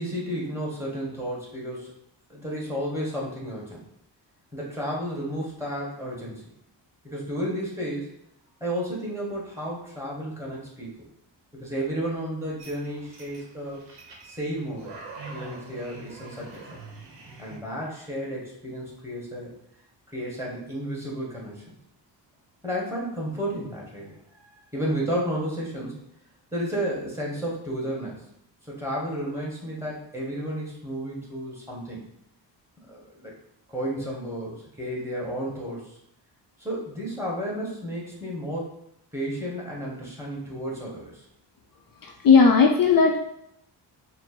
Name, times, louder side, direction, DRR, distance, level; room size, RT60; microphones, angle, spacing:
voice 1, 0.0-1.9 2.3-3.8 4.5-6.4 7.0-8.1 8.6-11.1 11.5-13.8 14.2-14.9 15.3-16.6 17.4-19.5 20.1-21.6 22.6-24.2 24.5-26.0 26.5-28.2 28.6-32.0 32.8-33.3 33.7-35.9 36.6-38.8 39.1-41.2, equal, 5° right, -4 dB, 1.3 m, -32 dB
sound 1, 12.6-17.6, right 3 dB, 65° right, 1.0 m, -44 dB
voice 2, 42.0-43.2, left 5 dB, 50° left, 2 dB, 0.5 m, -17 dB
4.4 x 2.0 x 4.3 m, 0.77 s
cardioid pair, 115°, 43 cm